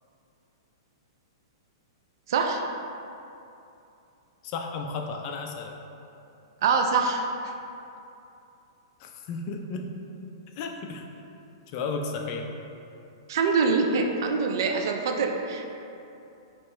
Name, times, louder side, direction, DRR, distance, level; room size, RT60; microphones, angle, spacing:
voice 1, 2.3-2.7 6.6-7.5 13.3-15.7, right 4 dB, 60° right, 3 dB, 0.4 m, -24 dB
voice 2, 4.4-5.8 9.0-9.9 10.6-11.0 11.7-12.5, left 4 dB, 40° left, 3 dB, 0.4 m, -33 dB
4.3 x 2.9 x 3.1 m, 2.7 s
hypercardioid pair, 140°, 2 cm